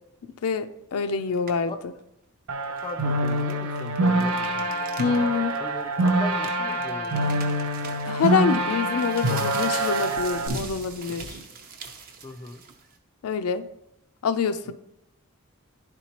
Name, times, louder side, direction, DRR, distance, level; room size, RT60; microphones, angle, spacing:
voice 1, 0.4-1.9 5.0-5.5 8.0-11.3 13.2-13.7 14.2-14.7, left 5 dB, 90° left, 10 dB, 0.4 m, -26 dB
sound 1, 1.3-1.7 2.6-5.2 5.5-5.6 6.0-13.0, right 3 dB, 40° right, 0.7 m, -40 dB
sound 2, 2.5-10.5, right 1 dB, 90° right, 0.6 m, -25 dB
voice 2, 2.8-4.7 5.6-7.2 12.2-12.6, left 1 dB, 20° left, 7 dB, 0.4 m, -38 dB
11.0 x 4.3 x 2.9 m, 0.85 s
head